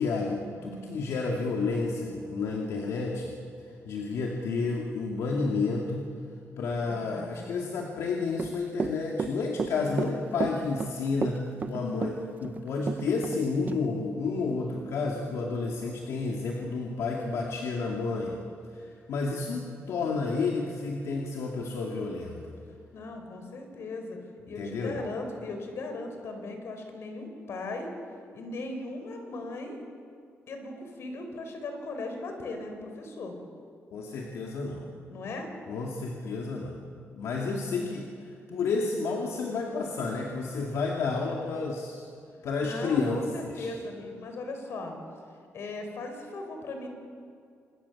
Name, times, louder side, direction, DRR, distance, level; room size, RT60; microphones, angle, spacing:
voice 1, 0.0-3.3 3.8-6.1 6.6-11.4 11.7-18.3 18.7-22.5 24.6-25.0 33.9-34.9 35.7-36.8 37.1-42.1 42.4-43.2 43.6-43.7, left 4 dB, 80° left, -1 dB, 2.5 m, -31 dB
voice 2, 6.8-7.7 9.6-10.6 22.9-24.2 24.5-27.9 28.3-29.8 30.5-33.4 35.1-35.5 37.4-37.5 42.6-45.0 45.5-46.9, left 2 dB, 60° left, 4 dB, 4.5 m, -38 dB
Run / Walk footsteps, 8.3-13.4 13.7-13.8, right 5 dB, 35° right, 0.8 m, -32 dB
26.5 x 21.0 x 7.3 m, 2.3 s
wide cardioid pair, 160°, 5 cm